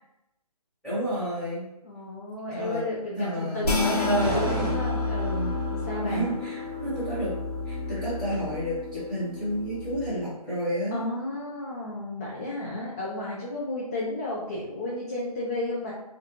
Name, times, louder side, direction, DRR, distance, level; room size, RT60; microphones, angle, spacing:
voice 1, 0.8-1.6 2.5-2.8 3.1-4.8 6.0-7.3 7.7-11.0, right 1 dB, 5° left, -14 dB, 1.0 m, -30 dB
voice 2, 1.8-6.3 10.9-15.9, left 1 dB, 25° left, -5 dB, 0.3 m, -32 dB
sound 1, 3.6-10.1, left 3 dB, 80° left, 1.0 m, -30 dB
sound 2, 4.2-5.7, right 2 dB, 40° right, 0.9 m, -34 dB
2.3 x 2.2 x 2.8 m, 0.90 s
hypercardioid pair, 155°, 20 cm